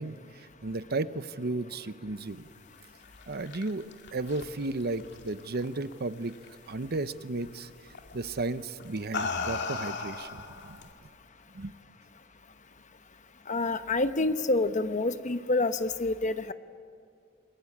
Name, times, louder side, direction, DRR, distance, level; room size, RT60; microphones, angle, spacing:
voice 1, 0.0-2.5 3.3-6.3 6.7-7.7 8.1-10.8 11.5-11.7, right 2 dB, 50° right, 13 dB, 0.8 m, -34 dB
sound 1, 3.0-5.9 6.3-6.7 7.9-8.2 8.8-10.9, left 4 dB, 60° left, 2.2 m, -36 dB
voice 2, 13.5-16.5, left 2 dB, 40° left, 11 dB, 1.0 m, -27 dB
28.5 x 22.0 x 8.6 m, 2.3 s
head